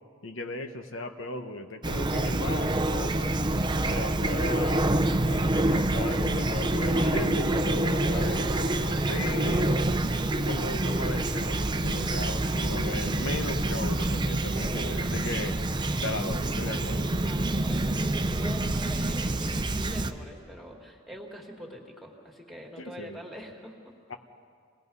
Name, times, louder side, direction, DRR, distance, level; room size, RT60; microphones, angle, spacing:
voice 1, 0.2-3.3 3.7-9.8 10.3-15.6 16.0-17.1 22.8-23.2 24.1-24.2, left 2 dB, 75° left, 5 dB, 1.1 m, -36 dB
Fowl / Chirp tweet, 1.8-20.1, right 1 dB, 25° right, 0.7 m, -27 dB
voice 2, 17.2-17.9 18.2-23.9, equal, ahead, 0 dB, 2.3 m, -44 dB
27.0 x 18.5 x 5.5 m, 2.1 s
head